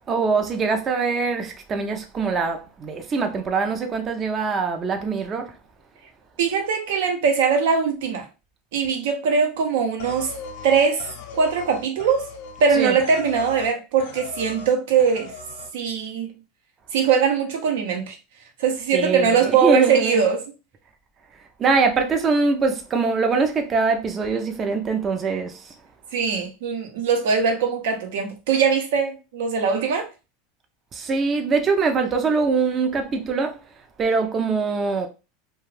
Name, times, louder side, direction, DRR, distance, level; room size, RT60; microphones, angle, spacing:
voice 1, 0.1-5.6 12.7-13.0 18.9-20.3 21.6-25.7 30.9-33.6 34.0-35.1, right 4 dB, 30° right, 0.5 m, -23 dB
voice 2, 6.4-8.3 8.7-10.3 10.6-11.1 11.3-12.3 12.6-15.3 15.7-16.3 16.9-18.2 18.6-20.4 26.1-30.1, right 6 dB, 75° right, 0.8 m, -21 dB
sound 1, 10.0-13.7 14.0-14.7 15.0-15.7, left 4 dB, 75° left, 0.7 m, -38 dB
2.4 x 2.3 x 3.2 m
supercardioid pair, 115°, 0 cm